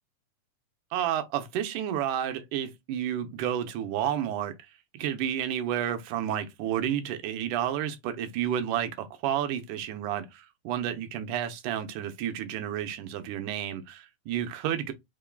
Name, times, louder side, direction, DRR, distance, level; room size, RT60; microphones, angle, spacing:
voice 1, 0.9-4.5 4.9-14.9, right 10 dB, 75° right, 2.0 m, -31 dB
5.2 x 3.6 x 2.2 m
omnidirectional pair, 4.0 m